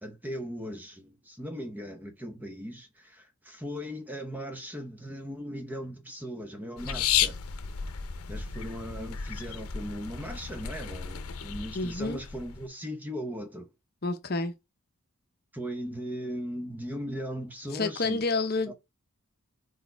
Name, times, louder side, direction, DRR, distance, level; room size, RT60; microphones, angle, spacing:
voice 1, 0.0-7.4 8.3-13.7 15.5-18.2 18.7-18.8, equal, 10° right, 0.9 m, -38 dB
sound 1, 6.8-12.7, left 8 dB, 85° left, 0.7 m, -33 dB
voice 2, 11.7-12.2 14.0-14.5 17.7-18.7, left 3 dB, 45° left, 0.8 m, -29 dB
4.7 x 4.6 x 4.5 m
head